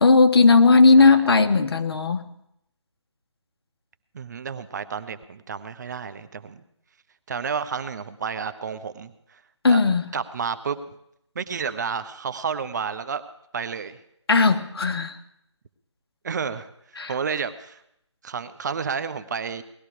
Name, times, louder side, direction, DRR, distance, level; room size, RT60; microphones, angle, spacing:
voice 1, 0.0-2.3 9.6-10.0 14.3-15.2 17.0-17.1, left 4 dB, 55° left, 7 dB, 1.3 m, -16 dB
voice 2, 4.1-6.6 7.3-9.4 9.7-9.8 10.1-11.0 11.3-13.2 13.5-14.0 16.2-16.7 17.1-17.8 18.2-19.6, right 6 dB, 40° right, 12 dB, 0.8 m, -31 dB
19.0 x 13.5 x 4.9 m, 0.78 s
figure-of-eight pair, 160°, 15 cm